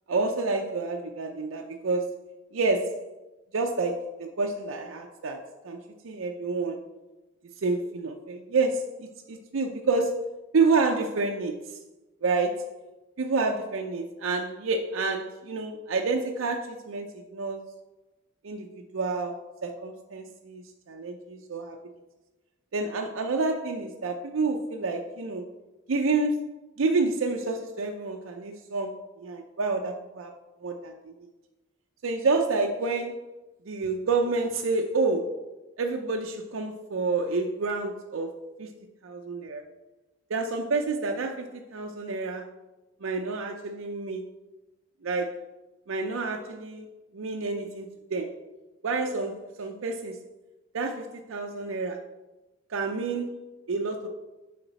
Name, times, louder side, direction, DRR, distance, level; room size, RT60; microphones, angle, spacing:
voice 1, 0.1-2.1 2.5-3.0 3.5-5.8 6.0-6.8 7.6-10.3 10.5-11.8 12.2-12.7 13.2-17.7 18.4-19.4 19.6-21.8 22.7-25.4 25.9-26.5 26.8-30.3 30.6-31.0 32.0-33.2 33.7-35.4 35.8-38.7 39.0-39.6 40.3-42.5 43.0-44.3 45.0-45.4 45.9-46.9 47.1-47.9 48.1-48.3 48.8-50.2 50.7-52.0 52.7-53.4 53.7-54.1, right 3 dB, 80° right, 2 dB, 0.5 m, -29 dB
6.9 x 5.1 x 4.0 m, 1.1 s
head